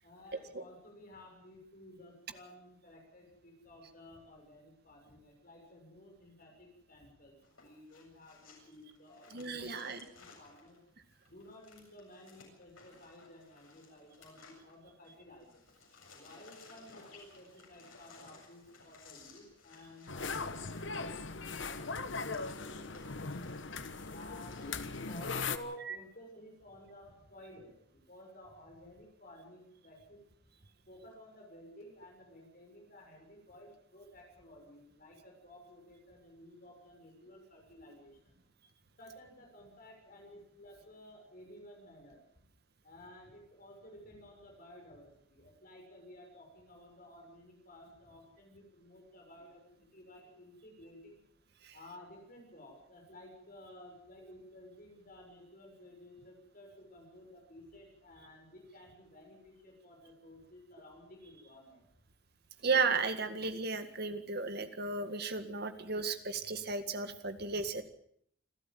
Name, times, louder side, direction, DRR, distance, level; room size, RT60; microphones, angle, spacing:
voice 1, 0.0-7.4 7.6-10.8 11.3-15.6 16.1-23.5 24.1-30.2 30.9-38.4 39.0-42.2 42.8-51.2 51.7-61.8 67.6-67.7, left 1 dB, 45° left, 1 dB, 6.5 m, -54 dB
sound 1, 7.4-15.1 15.4-24.7, left 4 dB, 85° left, 7.7 m, -59 dB
voice 2, 9.3-10.0 25.9-26.0 51.6-51.7 62.6-67.8, right 4 dB, 50° right, 8 dB, 1.8 m, -34 dB
sound 2, 20.1-25.6, left 4 dB, 65° left, 1.2 m, -39 dB
27.0 x 13.0 x 7.7 m, 0.69 s
head